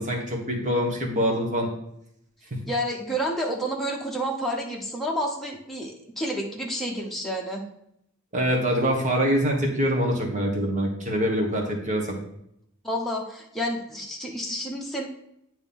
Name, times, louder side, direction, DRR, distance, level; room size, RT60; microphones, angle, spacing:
voice 1, 0.0-1.7 2.5-2.6 8.3-12.2, equal, 35° right, 0 dB, 1.3 m, -24 dB
voice 2, 2.7-7.6 12.8-15.1, equal, ahead, -2 dB, 1.1 m, -29 dB
9.0 x 3.1 x 5.4 m, 0.76 s
head